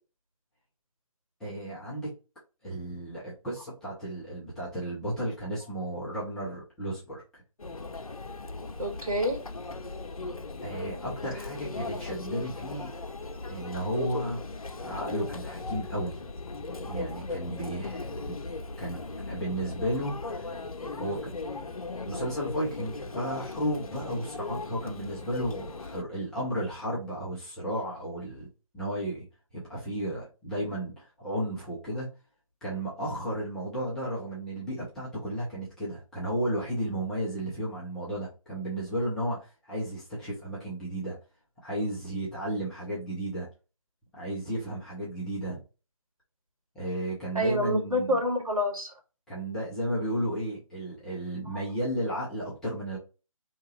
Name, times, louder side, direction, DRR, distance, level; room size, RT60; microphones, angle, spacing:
voice 1, 1.4-2.1 2.6-7.4 10.6-12.9 13.5-14.5 14.8-16.2 16.8-18.4 18.8-19.0 19.3-20.6 20.9-21.3 21.8-28.5 28.7-29.3 29.5-32.1 32.6-41.2 41.6-43.5 44.1-45.6 46.7-48.2 49.3-53.0, right 1 dB, 5° left, 0.4 m, -33 dB
Conversation / Chatter / Crowd, 7.6-26.0, left 3 dB, 80° left, 0.6 m, -38 dB
voice 2, 8.8-9.4 47.3-48.9 51.5-51.6, equal, 80° right, 1.7 m, -27 dB
4.5 x 2.9 x 2.9 m
figure-of-eight pair, 150°, 18 cm